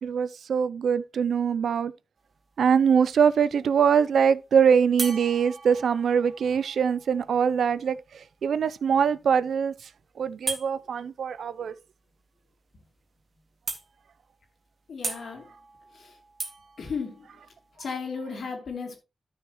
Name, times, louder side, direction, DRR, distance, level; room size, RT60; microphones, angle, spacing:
voice 1, 0.0-1.9 2.6-9.7 10.2-11.8, right 7 dB, 85° right, 0.5 m, -23 dB
sound 1, 2.2-2.7 5.0-8.6 10.5-10.7 12.6-12.7 13.1-13.2 13.7-14.2 15.0-17.7, right 3 dB, 50° right, 2.1 m, -38 dB
voice 2, 14.9-15.5 15.9-16.1 16.8-17.3 17.8-19.0, left 5 dB, 75° left, 2.8 m, -34 dB
12.5 x 6.4 x 3.0 m
cardioid pair, 75°, 0 cm